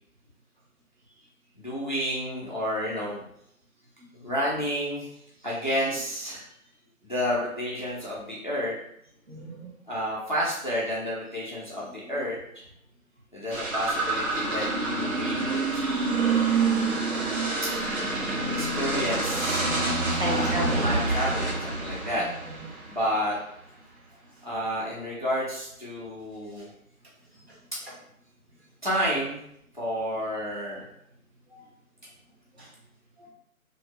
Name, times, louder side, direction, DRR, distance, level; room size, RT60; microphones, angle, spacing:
voice 1, 1.6-3.2 4.1-5.1 5.4-6.5 7.0-8.7 9.9-12.6 13.3-16.4 18.5-19.7 20.3-20.5 20.8-22.3 22.9-23.4 24.4-26.7 28.8-29.4 29.7-30.9, equal, 35° left, -6 dB, 0.4 m, -30 dB
voice 2, 9.3-9.7 20.2-21.0 22.2-22.6 32.6-32.7 33.2-33.3, right 1 dB, 45° right, -4 dB, 0.8 m, -33 dB
sound 1, 13.5-23.0, right 3 dB, 75° right, 1.1 m, -27 dB
2.5 x 2.1 x 2.4 m, 0.74 s
figure-of-eight pair, 155°, 43 cm